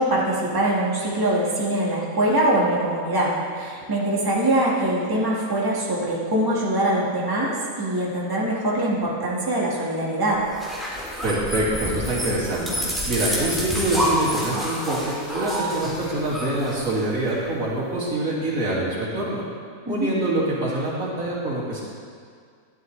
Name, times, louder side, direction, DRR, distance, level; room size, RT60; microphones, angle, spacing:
voice 1, 0.0-10.4 19.8-20.1, right 1 dB, 15° right, -5 dB, 1.5 m, -23 dB
sound 1, 10.4-17.4, equal, ahead, 1.9 m, -28 dB
voice 2, 11.2-12.8 13.1-19.4 19.9-21.8, right 1 dB, 70° right, -6 dB, 2.5 m, -25 dB
12.0 x 11.0 x 3.2 m, 2.1 s
omnidirectional pair, 1.5 m